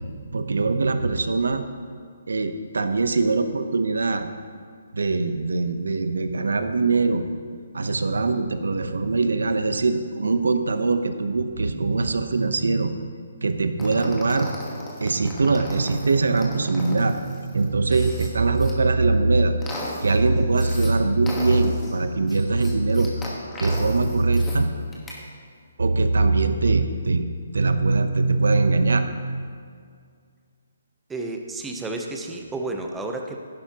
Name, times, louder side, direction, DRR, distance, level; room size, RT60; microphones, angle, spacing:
voice 1, 0.0-1.6 2.3-4.3 4.9-7.2 7.7-12.9 13.4-14.5 15.0-19.5 20.0-23.3 23.6-24.7 25.8-27.3 27.5-29.1, right 3 dB, 90° right, 8 dB, 0.8 m, -22 dB
sound 1, 13.8-18.7 19.2-20.9 21.3-24.6 24.9-25.2, left 1 dB, 10° left, 1.4 m, -37 dB
voice 2, 31.1-33.4, right 2 dB, 5° right, 3 dB, 0.7 m, -31 dB
11.5 x 10.5 x 2.9 m, 2.1 s
hypercardioid pair, 160°, 0 cm